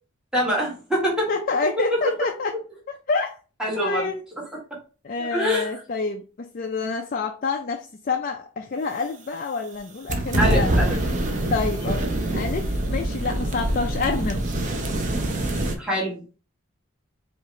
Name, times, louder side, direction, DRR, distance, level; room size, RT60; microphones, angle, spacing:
voice 1, 0.3-1.3 1.9-2.1 3.6-4.1 5.3-5.7 10.4-11.0 15.8-16.2, equal, 5° right, -5 dB, 1.3 m, -24 dB
voice 2, 1.3-2.6 2.9-3.3 3.7-4.2 5.0-10.7 11.5-12.0 12.3-14.4, left 4 dB, 40° left, 4 dB, 0.4 m, -27 dB
sound 1, 10.1-15.8, right 1 dB, 35° right, 0.6 m, -24 dB
4.7 x 2.5 x 3.1 m, 0.36 s
head